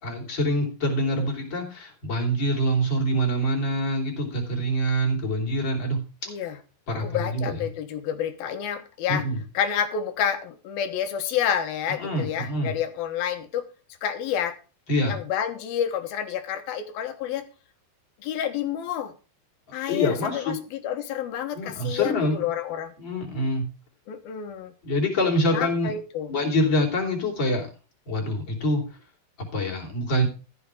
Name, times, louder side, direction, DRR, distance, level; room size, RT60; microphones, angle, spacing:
voice 1, 0.0-6.0 6.9-7.6 9.1-9.4 12.0-12.7 14.9-15.2 19.9-20.6 21.5-22.4 23.0-23.7 24.8-25.9 26.3-27.7 28.1-28.9 29.5-30.3, equal, 30° left, -1 dB, 4.5 m, -25 dB
voice 2, 6.3-6.6 6.9-9.3 9.5-13.6 14.0-14.6 15.0-17.5 18.2-19.1 19.7-22.9 24.1-24.7 25.4-26.3, left 9 dB, 75° left, 8 dB, 3.0 m, -29 dB
14.5 x 7.2 x 4.8 m, 0.34 s
omnidirectional pair, 4.6 m